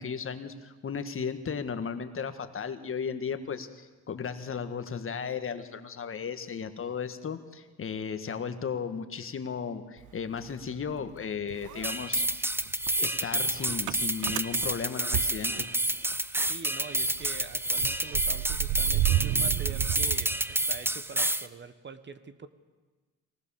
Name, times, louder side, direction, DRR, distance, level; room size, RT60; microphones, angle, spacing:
voice 1, 0.0-12.2 13.0-15.6, left 6 dB, 45° left, 9 dB, 1.6 m, -35 dB
Motor vehicle (road) / Engine starting, 10.0-11.2 11.5-16.1 16.5-16.6 16.8-20.9, right 16 dB, 80° right, 0.6 m, -33 dB
sound 1, 11.8-21.5, right 1 dB, 5° right, 0.8 m, -29 dB
voice 2, 16.4-22.5, right 5 dB, 35° right, 12 dB, 1.4 m, -44 dB
23.0 x 18.5 x 7.1 m, 1.3 s
cardioid pair, 90°, 30 cm